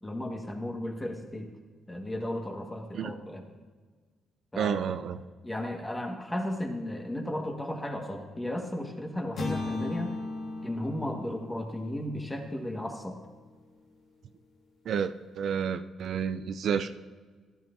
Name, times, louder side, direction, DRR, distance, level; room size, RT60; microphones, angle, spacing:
voice 1, 0.0-1.5 1.9-3.6 4.5-4.8 5.4-10.1 10.6-13.2, left 1 dB, 15° left, 2 dB, 1.7 m, -35 dB
voice 2, 4.6-5.2 14.9-16.9, right 7 dB, 65° right, 8 dB, 0.5 m, -30 dB
sound 1, 9.4-13.4, left 3 dB, 60° left, 1.9 m, -37 dB
14.0 x 12.0 x 2.7 m, 1.4 s
cardioid pair, 90°, 0 cm